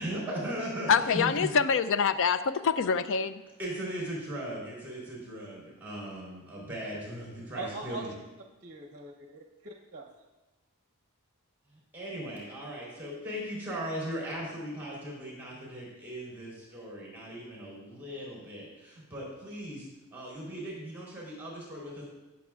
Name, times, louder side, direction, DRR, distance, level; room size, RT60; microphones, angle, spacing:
voice 1, 0.0-1.5 3.6-8.1 11.9-22.0, right 1 dB, 10° right, -4 dB, 3.6 m, -38 dB
voice 2, 0.9-3.4, left 6 dB, 60° left, 12 dB, 0.5 m, -25 dB
voice 3, 7.5-8.1 8.6-10.1, right 3 dB, 45° right, 0 dB, 0.8 m, -41 dB
18.0 x 7.4 x 2.4 m, 1.1 s
head